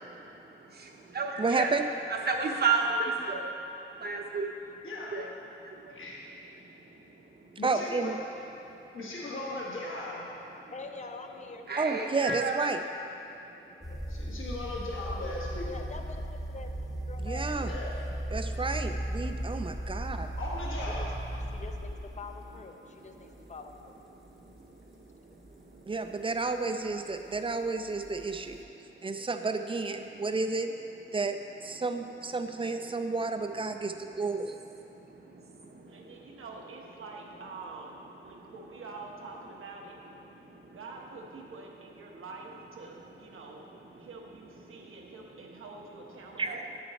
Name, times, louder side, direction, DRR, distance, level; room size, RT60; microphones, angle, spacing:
voice 1, 0.2-1.8 2.1-4.7 5.1-5.3 5.6-6.0 6.6-7.6 8.6-8.9 10.6-10.7 11.7-12.6 13.3-13.8 19.8-20.4 21.5-21.6 22.8-23.5 24.2-25.9 28.8-29.2 30.1-30.2 33.7-33.8 34.8-36.4 38.3-38.5 40.3-40.8 42.1-42.2 43.5-44.1 44.7-45.6 46.4-46.6, right 4 dB, 50° right, 1 dB, 0.9 m, -36 dB
voice 2, 1.4-1.8 7.6-8.2 11.8-12.8 17.2-17.7 18.3-20.3 25.9-28.6 29.0-30.7 31.1-34.5 46.4-46.6, right 3 dB, 25° right, 7 dB, 0.4 m, -31 dB
voice 3, 4.8-5.1 5.9-6.2 7.6-8.2 8.9-10.3 13.7-15.7 17.7-17.9 20.4-21.1, left 2 dB, 70° left, -5 dB, 1.5 m, -38 dB
voice 4, 10.7-11.6 12.1-12.2 15.6-16.7 17.1-17.7 20.9-21.1 21.5-23.9, left 3 dB, 35° left, 5 dB, 0.5 m, -44 dB
sound 1, 13.8-22.6 23.3-23.7 24.3-24.4 28.0-28.6, right 1 dB, ahead, 0.7 m, -36 dB
voice 5, 35.5-40.0 40.7-43.7 44.0-46.6, right 3 dB, 75° right, 0 dB, 1.0 m, -46 dB
9.5 x 6.4 x 4.1 m, 2.9 s
wide cardioid pair, 125°, 21 cm